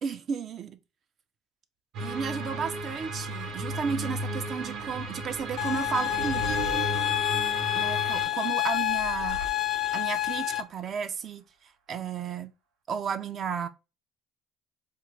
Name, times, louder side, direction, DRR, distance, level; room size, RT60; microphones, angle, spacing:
voice 1, 0.0-0.8 2.0-6.6 7.7-9.4 9.9-12.5 12.9-13.7, right 6 dB, 50° right, 0.5 m, -33 dB
sound 1, 1.9-8.3, right 1 dB, 70° right, 1.0 m, -35 dB
sound 2, 5.6-10.6, left 13 dB, 55° left, 0.4 m, -28 dB
sound 3, 5.8-7.7 8.7-10.2, right 4 dB, 90° right, 0.7 m, -39 dB
3.7 x 2.2 x 3.0 m
supercardioid pair, 95°, 0 cm